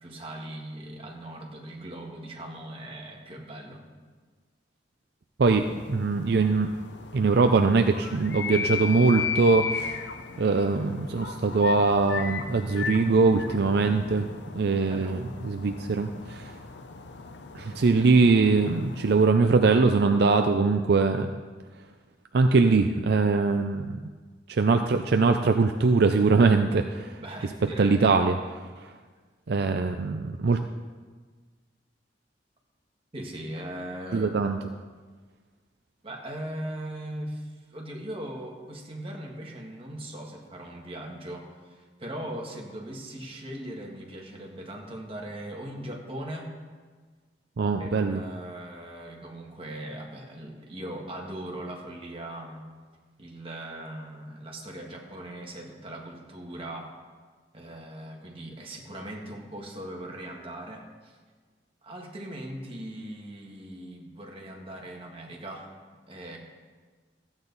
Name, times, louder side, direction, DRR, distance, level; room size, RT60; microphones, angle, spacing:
voice 1, 0.0-3.8 14.9-15.2 27.2-28.0 33.1-34.4 36.0-46.5 47.8-52.7 53.2-56.9 57.5-61.2 61.8-65.7 66.1-66.4, right 1 dB, 30° right, 0 dB, 1.7 m, -39 dB
sound 1, 5.4-19.4, left 5 dB, 75° left, 0.7 m, -36 dB
voice 2, 5.4-6.7 7.1-10.0 10.4-14.3 14.5-16.5 17.5-21.3 22.3-24.1 24.5-27.1 27.8-28.4 29.5-30.6 34.1-34.6 47.6-48.2, right 4 dB, 65° right, 6 dB, 0.5 m, -22 dB
14.5 x 8.9 x 4.1 m, 1.5 s
head